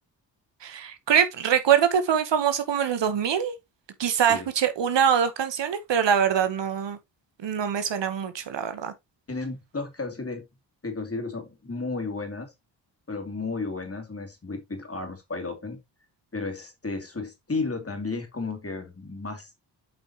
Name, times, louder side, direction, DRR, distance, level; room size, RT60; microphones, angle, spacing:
voice 1, 0.6-3.5 4.0-7.0 7.4-8.9, right 8 dB, 60° right, 1.2 m, -24 dB
voice 2, 9.3-10.4 10.8-12.5 13.1-15.8 16.3-19.6, left 3 dB, 30° left, 3.0 m, -33 dB
7.8 x 5.5 x 3.0 m
supercardioid pair, 45°, 48 cm